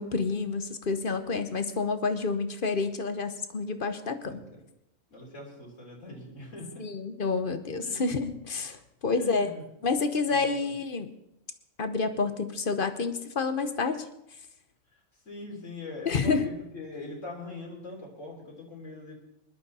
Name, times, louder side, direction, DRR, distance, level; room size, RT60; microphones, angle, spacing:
voice 1, 0.0-4.3 6.8-9.5 9.8-11.2 11.8-14.1 16.0-16.5, left 4 dB, 45° left, 9 dB, 1.0 m, -29 dB
voice 2, 4.2-4.6 5.1-6.9 7.8-8.1 9.1-10.0 10.2-10.7 14.9-15.0 15.3-19.1, left 2 dB, 65° left, -1 dB, 3.9 m, -42 dB
20.0 x 11.5 x 4.2 m, 0.83 s
omnidirectional pair, 1.4 m